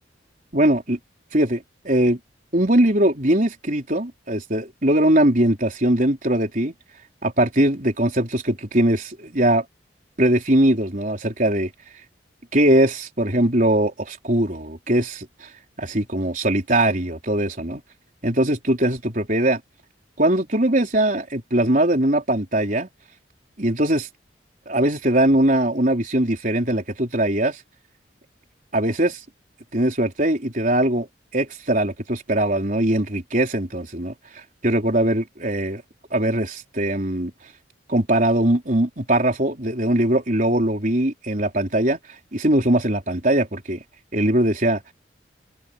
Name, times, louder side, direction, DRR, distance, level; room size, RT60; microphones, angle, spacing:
voice 1, 0.5-1.0 1.3-2.2 2.5-6.7 7.2-9.6 10.2-11.7 12.5-15.5 15.8-17.8 18.2-19.6 20.2-22.9 23.6-24.1 24.7-27.6 28.7-29.2 29.7-31.1 31.3-35.8 36.1-37.3 37.9-42.0 42.3-43.8 44.1-44.8, right 1 dB, 45° right, 4.3 m, -21 dB
head